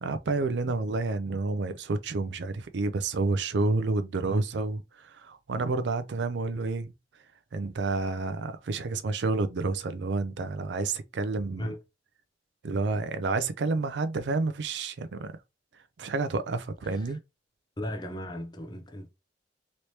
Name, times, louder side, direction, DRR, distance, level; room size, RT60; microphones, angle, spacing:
voice 1, 0.0-6.9 7.5-11.7 12.6-15.4 16.0-17.2, right 3 dB, 70° right, 0.4 m, -29 dB
voice 2, 16.8-17.2 17.8-19.1, left 1 dB, 25° left, 0.6 m, -36 dB
3.2 x 3.0 x 2.7 m
head